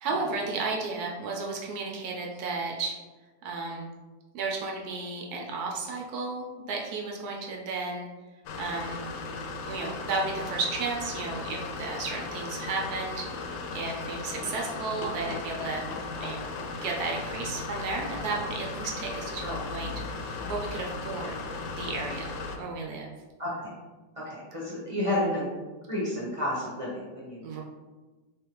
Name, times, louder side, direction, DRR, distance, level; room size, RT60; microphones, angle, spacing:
voice 1, 0.0-2.9 3.4-3.9 4.3-8.1 8.6-9.0 9.7-13.4 13.7-15.9 16.2-21.4 21.7-23.1 27.4-27.6, right 3 dB, 70° right, -1 dB, 0.9 m, -33 dB
sound 1, 8.5-22.6, left 4 dB, 80° left, 1.3 m, -36 dB
voice 2, 24.2-25.5 25.9-27.6, left 1 dB, 30° right, -8 dB, 0.6 m, -31 dB
3.5 x 3.3 x 3.0 m, 1.3 s
omnidirectional pair, 2.1 m